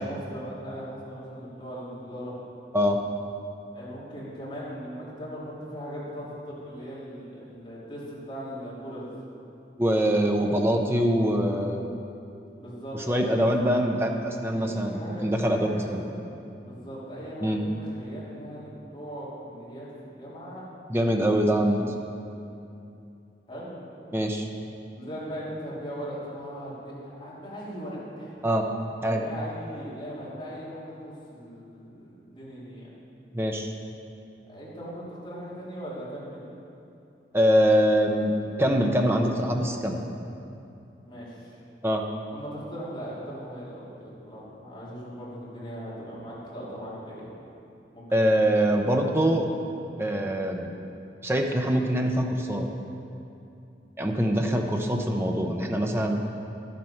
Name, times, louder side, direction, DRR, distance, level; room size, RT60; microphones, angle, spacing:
voice 1, 0.0-2.4 3.7-9.1 12.5-13.4 14.5-15.9 16.6-19.9 20.2-20.7 21.0-21.3 23.5-23.7 25.0-28.3 29.0-32.9 34.5-36.5 41.0-41.5 42.3-47.3 47.9-48.4 49.0-49.1, equal, 30° left, -9 dB, 3.1 m, -39 dB
voice 2, 9.8-11.8 13.1-16.0 17.4-17.6 20.9-21.8 24.1-24.5 28.4-28.6 29.0-29.2 33.3-33.7 37.3-40.0 41.8-42.0 48.1-49.5 50.0-50.7 51.2-52.7 54.0-56.2, equal, 15° right, 2 dB, 0.7 m, -24 dB
12.0 x 7.7 x 5.7 m, 2.7 s
head